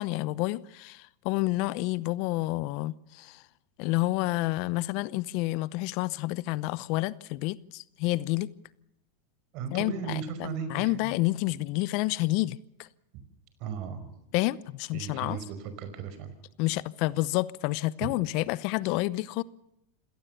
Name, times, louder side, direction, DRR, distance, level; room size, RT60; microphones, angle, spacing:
voice 1, 0.0-3.4 3.8-8.5 9.7-12.9 14.3-15.4 16.6-19.4, left 19 dB, 55° left, 0.8 m, -29 dB
voice 2, 9.5-11.1 13.6-14.1 14.9-15.5 15.8-16.3 18.0-18.1, right 6 dB, 50° right, 5.1 m, -36 dB
27.0 x 17.5 x 6.9 m
hypercardioid pair, 110°, 0 cm